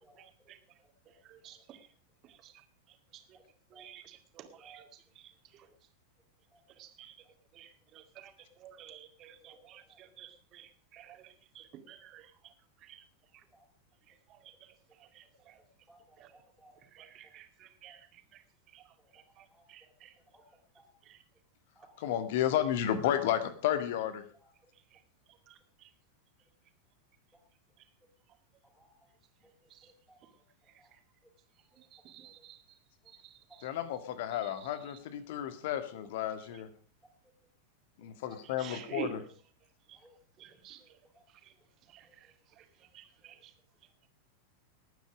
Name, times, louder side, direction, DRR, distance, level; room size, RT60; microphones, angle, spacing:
voice 1, 0.1-0.6 1.2-1.9 2.2-3.4 3.7-5.7 6.7-7.2 7.5-12.5 12.8-13.0 13.3-13.4 14.1-15.6 16.2-16.4 16.8-18.4 18.7-20.1 21.0-21.2 24.9-25.0 25.5-25.9 29.7-29.9 30.2-30.3 31.8-32.6 33.1-33.7 34.3-35.0 38.4-39.2 39.9-40.0 40.4-41.0 41.4-41.5 41.9-43.5, right 10 dB, 35° right, 7 dB, 2.2 m, -51 dB
voice 2, 15.9-17.1 17.9-18.0 19.5-19.6 20.8-20.9 21.8-21.9 22.2-22.3 24.4-24.5 28.8-28.9 30.1-30.2 30.8-30.9 32.2-32.3 33.5-33.6 34.6-34.8 38.3-38.4 40.0-40.2, right 2 dB, ahead, -4 dB, 3.6 m, -60 dB
voice 3, 22.0-24.2 33.6-36.7 38.0-39.2, left 11 dB, 50° left, 11 dB, 1.9 m, -32 dB
20.0 x 9.1 x 5.0 m, 0.43 s
figure-of-eight pair, 90°, 0 cm